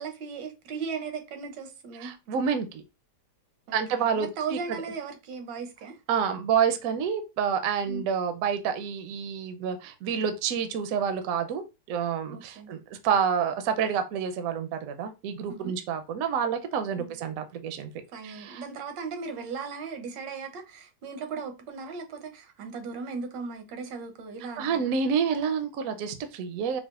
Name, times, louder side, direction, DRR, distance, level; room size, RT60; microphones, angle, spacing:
voice 1, 0.0-2.1 3.7-6.0 7.9-8.0 12.3-12.7 15.5-15.7 16.9-17.2 18.1-24.9, right 5 dB, 85° right, 1.4 m, -37 dB
voice 2, 2.0-2.8 3.7-4.6 6.1-17.9 18.2-18.6 24.6-26.8, right 7 dB, 70° right, 0.8 m, -28 dB
4.9 x 2.0 x 2.3 m
omnidirectional pair, 1.9 m